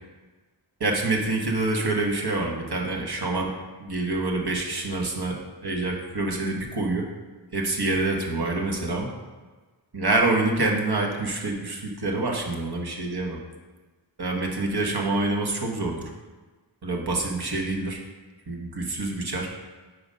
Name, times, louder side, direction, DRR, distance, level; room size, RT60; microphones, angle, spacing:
voice 1, 0.8-3.5 3.8-7.1 7.5-9.1 9.9-13.4 14.2-16.1 16.8-18.0 18.5-19.5, right 2 dB, 60° right, 1 dB, 1.2 m, -26 dB
5.4 x 4.8 x 5.1 m, 1.3 s
wide cardioid pair, 75°, 44 cm